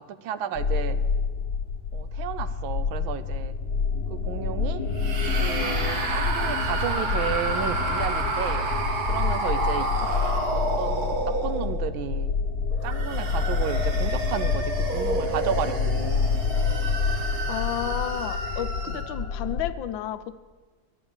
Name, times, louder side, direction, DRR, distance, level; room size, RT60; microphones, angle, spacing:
voice 1, 0.2-1.0 1.9-3.5 4.1-4.8 5.4-8.7 9.1-9.9 10.5-12.3 12.8-16.3 18.9-19.0, right 9 dB, 80° right, 13 dB, 1.4 m, -32 dB
sound 1, 0.6-19.7, left 5 dB, 55° left, 1.4 m, -28 dB
sound 2, 4.9-12.0 12.7-19.2, right 2 dB, 50° right, 1.6 m, -30 dB
voice 2, 17.5-20.4, left 11 dB, 75° left, 11 dB, 1.3 m, -32 dB
11.5 x 9.7 x 7.1 m, 1.3 s
omnidirectional pair, 2.2 m